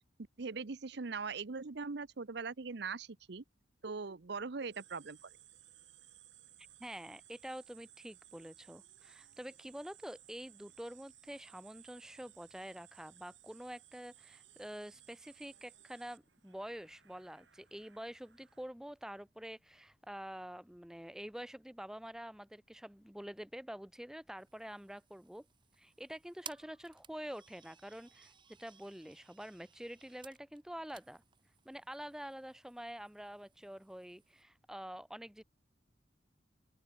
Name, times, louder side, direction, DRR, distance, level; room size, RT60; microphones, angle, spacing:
voice 1, 0.4-3.4 3.8-5.2, right 4 dB, 65° right, 0.8 m, -41 dB
sound 1, 4.7-18.6, right 12 dB, 80° right, 6.8 m, -61 dB
voice 2, 6.8-25.5 25.8-28.3 28.6-31.2 31.7-35.4, equal, 5° right, 0.6 m, -47 dB
sound 2, 24.4-34.4, right 7 dB, 25° right, 2.0 m, -58 dB
open air
head